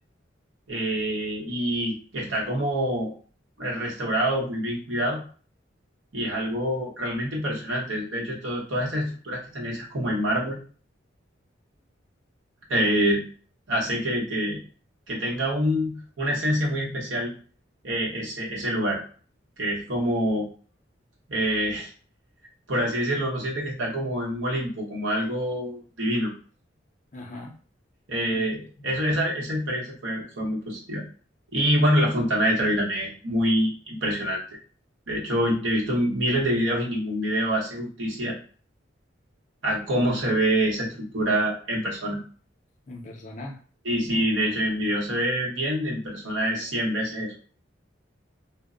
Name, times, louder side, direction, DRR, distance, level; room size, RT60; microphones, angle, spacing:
voice 1, 0.7-3.1 3.6-5.2 6.1-10.6 12.7-13.2 13.7-14.6 15.1-17.3 17.8-19.0 19.6-20.5 21.3-21.9 22.7-26.3 28.1-31.0 31.5-34.4 35.1-38.4 39.6-42.2 43.8-47.3, equal, 90° right, -3 dB, 0.9 m, -26 dB
voice 2, 27.1-27.6 28.3-28.5 42.9-43.6 44.1-44.5, left 2 dB, 40° left, 2 dB, 0.5 m, -40 dB
2.1 x 2.0 x 3.6 m, 0.42 s
head